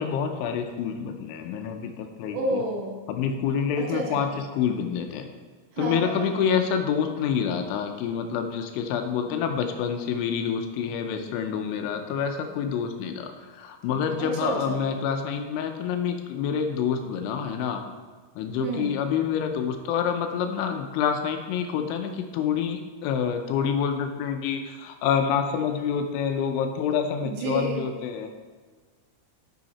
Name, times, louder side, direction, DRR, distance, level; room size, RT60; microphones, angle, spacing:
voice 1, 0.0-2.6 3.1-5.3 5.8-17.8 18.4-28.3, left 7 dB, 80° left, 5 dB, 2.9 m, -27 dB
voice 2, 2.3-3.0 3.8-4.2 5.7-6.5 14.2-14.8 18.6-18.9 27.2-27.8, right 3 dB, 75° right, -1 dB, 2.8 m, -30 dB
10.5 x 5.7 x 4.1 m, 1.4 s
omnidirectional pair, 5.9 m